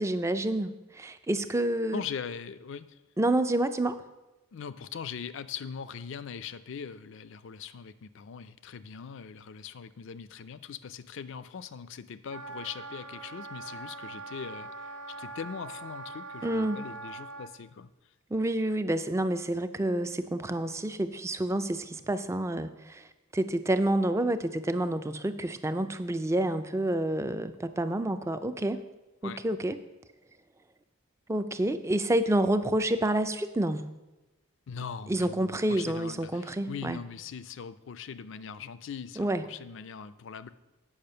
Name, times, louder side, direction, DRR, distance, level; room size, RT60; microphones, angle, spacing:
voice 1, 0.0-2.0 3.2-4.0 16.4-16.8 18.3-23.1 23.3-28.8 29.2-29.8 31.3-33.9 35.1-37.0 39.2-39.4, right 1 dB, 15° right, 10 dB, 0.3 m, -28 dB
voice 2, 1.9-3.0 4.5-17.9 29.2-29.4 34.7-40.5, left 6 dB, 55° left, 14 dB, 0.4 m, -41 dB
Wind instrument woodwind instrument, 12.3-17.5, right 3 dB, 85° right, 1.2 m, -42 dB
8.7 x 5.6 x 6.6 m, 1.0 s
head